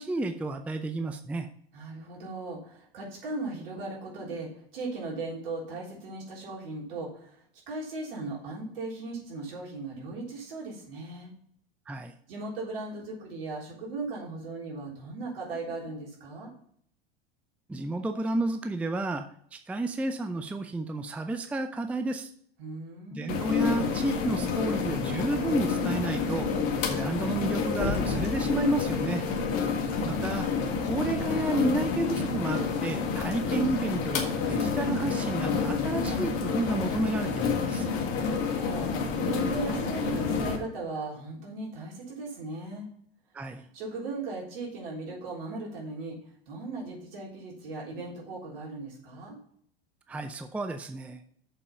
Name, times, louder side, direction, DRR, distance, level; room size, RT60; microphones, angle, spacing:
voice 1, 0.0-1.5 11.9-12.1 17.7-22.3 23.1-26.5 26.9-29.3 30.1-30.5 30.8-37.9 43.3-43.7 50.1-51.2, right 2 dB, 5° right, 8 dB, 0.5 m, -31 dB
voice 2, 1.7-11.3 12.3-16.5 22.6-23.4 29.6-30.3 38.1-42.9 43.6-46.2 46.5-49.4, right 3 dB, 65° right, -3 dB, 3.8 m, -38 dB
sound 1, 23.3-40.6, left 5 dB, 45° left, 1.7 m, -29 dB
6.9 x 5.6 x 5.5 m, 0.65 s
figure-of-eight pair, 85°, 31 cm